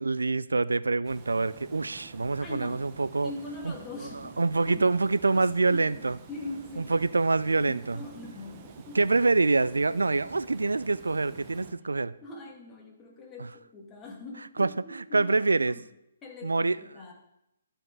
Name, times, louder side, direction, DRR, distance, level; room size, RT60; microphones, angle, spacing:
voice 1, 0.0-3.3 3.6-3.7 4.4-6.1 6.8-8.0 8.9-12.1 14.6-15.8 16.4-16.8, right 3 dB, 80° right, 16 dB, 0.3 m, -25 dB
Water, 1.0-11.7, right 6 dB, 30° right, 1.0 m, -49 dB
voice 2, 2.4-2.9 3.2-4.9 5.2-7.0 7.6-9.0 12.2-15.3 15.7-15.8 16.2-17.1, left 2 dB, 20° left, -1 dB, 2.1 m, -43 dB
12.5 x 5.1 x 4.8 m, 0.84 s
figure-of-eight pair, 130°, 0 cm